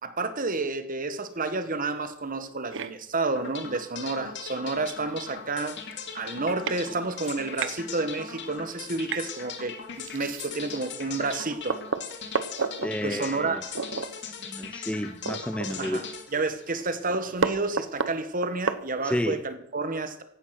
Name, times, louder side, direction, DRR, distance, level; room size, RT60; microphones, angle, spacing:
voice 1, 0.0-5.8 6.1-11.8 13.0-13.7 15.8-20.2, right 3 dB, 40° right, 10 dB, 1.4 m, -30 dB
sound 1, 2.7-2.9 4.4-4.5 5.0-5.1 5.3-5.6 6.2-6.3 6.6-6.8 7.2-7.7 9.1-9.3 10.0-10.7 11.2-11.3 11.7-12.9 13.7-14.1 14.4-14.5 14.9-16.1 16.4-16.5 16.8-19.3, right 5 dB, 60° right, 1.0 m, -31 dB
sound 2, 3.3-17.4, left 6 dB, 55° left, 2.2 m, -40 dB
voice 2, 12.8-13.6 14.5-16.1 19.0-19.4, equal, 5° left, 8 dB, 0.6 m, -31 dB
16.0 x 11.5 x 5.9 m, 0.69 s
head